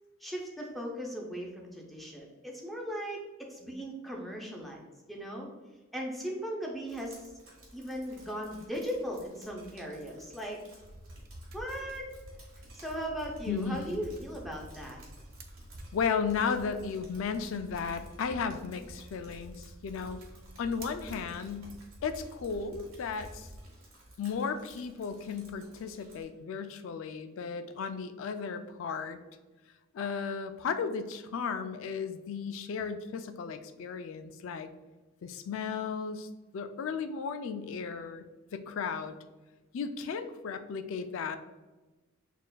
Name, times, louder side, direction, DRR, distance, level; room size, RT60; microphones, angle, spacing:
voice 1, 0.2-4.8 5.1-5.5 5.9-7.3 7.7-10.6 11.5-12.1 12.7-15.0, equal, ahead, -2 dB, 0.6 m, -38 dB
Drip, 6.9-26.2, right 1 dB, 75° right, 1.4 m, -57 dB
sound 1, 10.8-23.7, right 1 dB, 45° right, 0.4 m, -49 dB
voice 2, 13.5-14.0 15.9-20.2 20.6-21.7 22.0-23.5 24.2-29.2 29.9-34.7 35.2-36.3 36.5-38.2 38.5-39.2 39.7-41.4, left 6 dB, 70° left, 8 dB, 0.3 m, -35 dB
6.4 x 2.5 x 2.2 m, 1.2 s
head